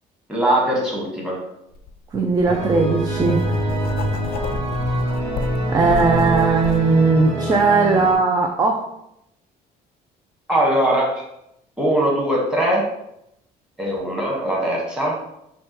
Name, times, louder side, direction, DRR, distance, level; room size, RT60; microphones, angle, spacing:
voice 1, 0.3-1.4 10.5-11.1 11.8-12.9 13.8-15.2, right 1 dB, 5° right, -4 dB, 1.3 m, -20 dB
Writing, 1.7-1.9 2.4-6.8, left 5 dB, 60° left, 0.5 m, -31 dB
voice 2, 2.1-3.5 5.0-5.2 5.7-8.9, right 4 dB, 25° right, 2 dB, 0.4 m, -18 dB
sound 1, 2.5-8.1, right 1 dB, 40° right, 1.4 m, -25 dB
5.2 x 2.3 x 3.0 m, 0.81 s
cardioid pair, 110°, 17 cm